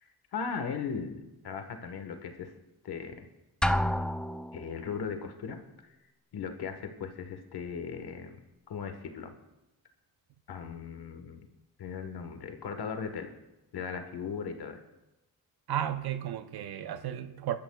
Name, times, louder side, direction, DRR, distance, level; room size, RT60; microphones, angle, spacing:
voice 1, 0.0-2.5 2.8-3.2 4.5-5.6 6.3-8.4 8.7-9.3 10.5-11.4 11.8-13.3 13.7-14.8, left 6 dB, 90° left, 6 dB, 1.4 m, -38 dB
Drum, 3.6-4.8, left 1 dB, ahead, 0.3 m, -29 dB
voice 2, 15.7-17.6, right 10 dB, 80° right, 10 dB, 0.7 m, -33 dB
22.0 x 12.5 x 2.3 m, 0.97 s
cardioid pair, 90°, 37 cm